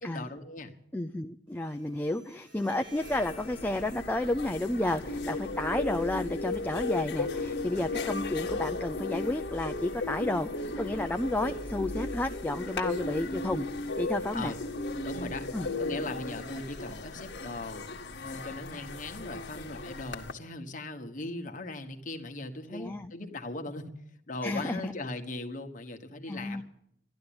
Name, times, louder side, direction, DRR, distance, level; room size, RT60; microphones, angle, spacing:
voice 1, 0.0-0.7 14.3-14.6 15.0-15.4 15.8-17.9 18.2-23.9 24.3-26.6, left 2 dB, 45° left, 6 dB, 1.3 m, -39 dB
voice 2, 0.9-13.7 14.0-14.5 15.5-15.7 22.7-23.1 24.4-24.9 26.3-26.6, left 1 dB, 10° left, 6 dB, 0.5 m, -31 dB
Bowed string instrument, 1.5-8.5, left 1 dB, 65° right, 5.1 m, -54 dB
sound 1, 2.6-2.7 2.9-20.3, left 3 dB, 65° left, 1.4 m, -42 dB
sound 2, 5.1-16.3, left 2 dB, 85° left, 1.2 m, -35 dB
12.5 x 11.5 x 8.7 m, 0.75 s
head